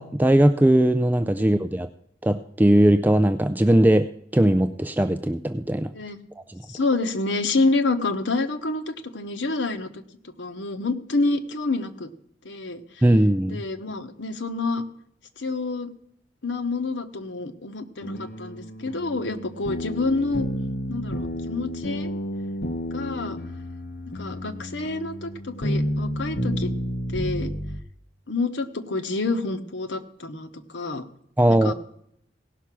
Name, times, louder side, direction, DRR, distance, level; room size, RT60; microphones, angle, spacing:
voice 1, 0.0-1.9 2.2-5.9 13.0-13.6 31.4-31.7, right 1 dB, 10° right, 9 dB, 0.3 m, -19 dB
voice 2, 6.7-10.0 10.4-12.1 12.4-12.8 13.5-14.8 15.4-15.9 16.4-20.5 20.9-22.1 22.9-23.4 24.1-26.7 27.1-27.5 28.3-31.0 31.5-31.7, left 3 dB, 80° left, 7 dB, 1.1 m, -28 dB
sound 1, 18.0-27.8, equal, 60° left, 1.1 m, -31 dB
17.0 x 5.8 x 6.1 m, 0.71 s
head